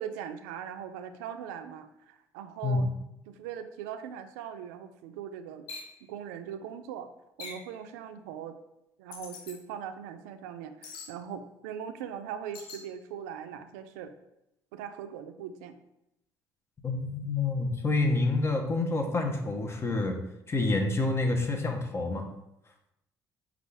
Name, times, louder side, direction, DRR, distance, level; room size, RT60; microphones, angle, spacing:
voice 1, 0.0-2.9 3.3-5.6 6.1-7.1 7.4-8.6 9.0-14.1 14.7-15.8, right 8 dB, 90° right, 9 dB, 0.3 m, -40 dB
sound 1, 5.7-5.9 7.4-7.7 9.1-9.6 10.8-11.1 12.5-12.8, left 4 dB, 80° left, 0.7 m, -42 dB
voice 2, 16.8-22.3, left 2 dB, 30° left, 4 dB, 0.8 m, -28 dB
5.2 x 2.4 x 3.3 m, 0.86 s
supercardioid pair, 65°, 9 cm